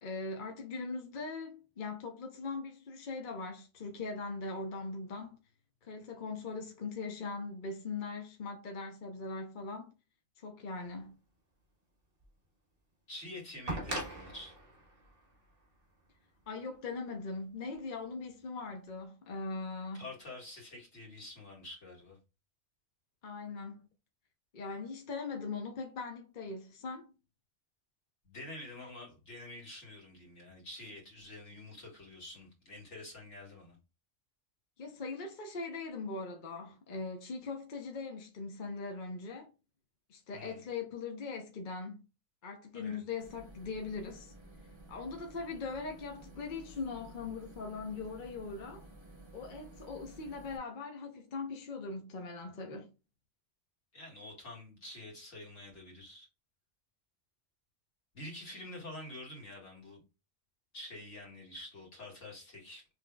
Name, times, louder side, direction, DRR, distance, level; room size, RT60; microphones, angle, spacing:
voice 1, 0.0-5.4 5.8-9.9 10.4-11.1 16.5-20.0 23.2-23.9 24.5-27.1 34.8-39.5 40.1-42.0 42.4-44.3 44.9-48.9 49.3-52.9, left 4 dB, 50° left, 0.8 m, -40 dB
sound 1, 12.2-12.3 13.7-16.5 17.7-17.8, right 2 dB, 50° right, 1.5 m, -41 dB
voice 2, 13.1-14.6 19.9-22.2 28.3-33.8 40.3-40.6 42.7-43.0 53.9-56.3 58.1-60.0 60.7-62.8, left 1 dB, 75° left, 2.1 m, -47 dB
sound 2, 43.2-50.6, right 2 dB, 25° right, 1.1 m, -53 dB
5.2 x 3.3 x 2.2 m
omnidirectional pair, 1.2 m